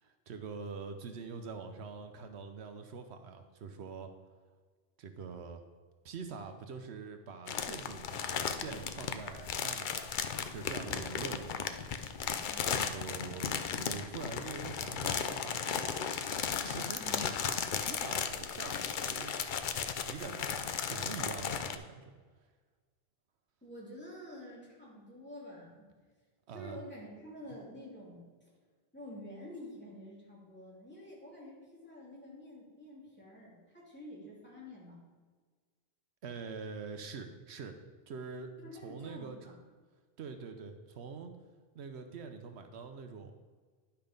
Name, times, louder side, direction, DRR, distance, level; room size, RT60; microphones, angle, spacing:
voice 1, 0.0-4.1 5.0-5.6 6.0-10.1 10.5-11.7 12.9-15.9 16.5-17.0 17.8-19.3 20.1-22.1 26.5-26.8 36.2-37.8 38.1-39.5 40.2-41.3 41.7-43.3, right 5 dB, 85° right, 7 dB, 1.0 m, -44 dB
sound 1, 7.5-21.8, left 7 dB, 55° left, 0.7 m, -35 dB
voice 2, 12.5-12.9 17.0-17.4 23.6-25.9 26.5-28.2 28.9-35.0 38.6-39.6, left 1 dB, 10° left, -7 dB, 3.0 m, -48 dB
10.5 x 5.6 x 5.2 m, 1.5 s
omnidirectional pair, 1.1 m